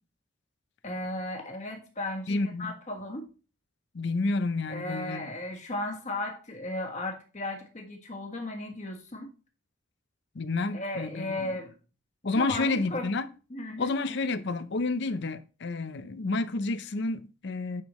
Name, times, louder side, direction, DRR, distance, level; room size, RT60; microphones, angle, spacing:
voice 1, 0.8-3.3 4.7-9.3 10.7-11.7 12.3-13.1 13.5-13.9, left 1 dB, 35° left, 1.5 m, -35 dB
voice 2, 2.3-2.8 3.9-5.3 10.3-11.5 12.2-13.3 13.8-17.8, left 3 dB, 55° left, 0.6 m, -30 dB
9.3 x 5.5 x 3.1 m
head